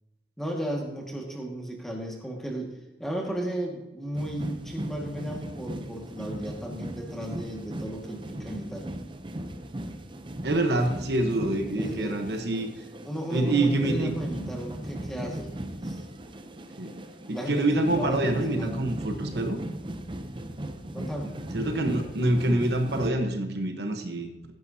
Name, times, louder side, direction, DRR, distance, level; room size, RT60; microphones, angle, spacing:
voice 1, 0.4-8.9 10.7-10.9 11.7-12.2 13.0-15.5 15.8-16.0 17.3-18.8 20.9-21.3, right 1 dB, ahead, 0 dB, 1.9 m, -34 dB
sound 1, 4.2-23.1, right 1 dB, 25° right, 0.7 m, -38 dB
voice 2, 10.4-12.7 13.3-14.1 16.8-16.9 17.3-19.6 21.5-24.5, right 1 dB, 65° right, 4 dB, 1.2 m, -26 dB
15.0 x 10.5 x 2.8 m, 1.1 s
head